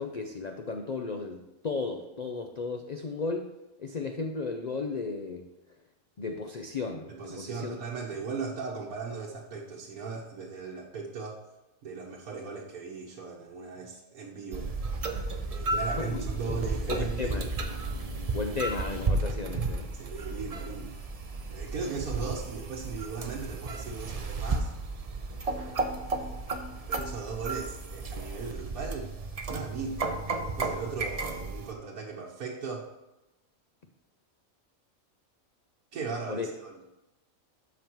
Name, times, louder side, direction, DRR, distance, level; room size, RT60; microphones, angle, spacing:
voice 1, 0.0-3.5 3.8-5.4 6.2-7.8 15.7-16.6 16.9-17.5 18.3-19.9 36.3-36.5, left 4 dB, 65° left, 5 dB, 0.4 m, -34 dB
voice 2, 7.1-11.4 11.8-14.7 15.5-17.4 19.9-20.9 21.5-24.7 25.5-25.8 26.9-29.1 29.5-30.1 30.4-32.9 35.9-36.8, right 5 dB, 85° right, -3 dB, 1.5 m, -38 dB
sound 1, 14.5-31.7, right 3 dB, 40° right, 0.5 m, -33 dB
13.0 x 5.3 x 3.0 m, 0.97 s
omnidirectional pair, 1.5 m